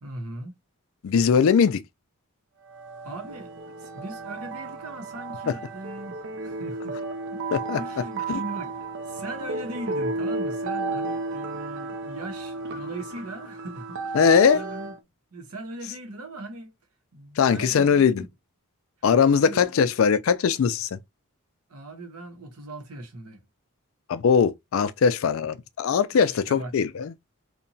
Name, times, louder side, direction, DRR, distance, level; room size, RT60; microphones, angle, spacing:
voice 1, 0.0-0.5 3.0-3.5 3.8-7.0 7.3-8.8 9.1-14.2 14.5-14.9 15.3-16.7 17.1-18.3 19.2-19.6 21.7-23.4 26.1-26.7, right 1 dB, 80° right, 0.8 m, -39 dB
voice 2, 1.0-1.8 5.5-5.6 7.5-7.8 8.3-8.4 14.1-14.6 17.4-18.2 19.0-21.0 24.1-27.1, left 6 dB, 60° left, 0.3 m, -20 dB
sound 1, 2.6-15.0, right 3 dB, 55° right, 0.4 m, -33 dB
2.8 x 2.2 x 2.6 m
head